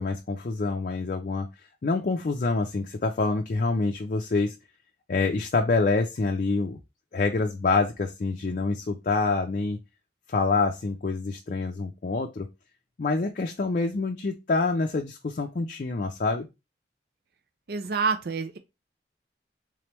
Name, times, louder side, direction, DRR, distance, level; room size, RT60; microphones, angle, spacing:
voice 1, 0.0-1.5 1.8-4.5 5.1-6.8 7.1-9.8 10.3-12.5 13.0-16.5, left 3 dB, 50° left, 0.4 m, -26 dB
voice 2, 17.7-18.6, right 5 dB, 60° right, 0.5 m, -27 dB
3.7 x 3.3 x 3.0 m
head